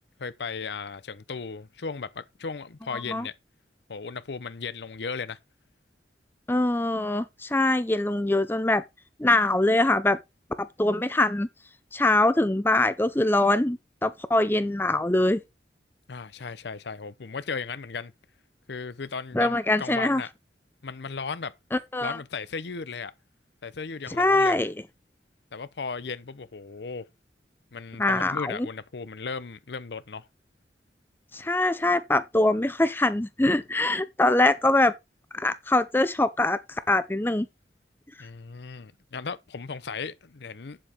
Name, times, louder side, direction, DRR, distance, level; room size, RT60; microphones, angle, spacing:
voice 1, 0.2-3.3 3.9-5.4 16.1-18.1 18.7-20.3 20.8-21.5 22.0-23.1 23.6-24.6 25.5-27.1 27.7-30.3 38.2-40.8, left 5 dB, 80° left, 0.7 m, -36 dB
voice 2, 2.9-3.3 6.5-8.8 9.2-10.2 10.6-11.5 11.9-15.4 19.3-20.2 21.7-22.2 24.2-24.7 28.0-28.7 31.3-34.9 35.3-37.5, left 2 dB, 10° left, 0.5 m, -23 dB
8.7 x 7.6 x 4.3 m
head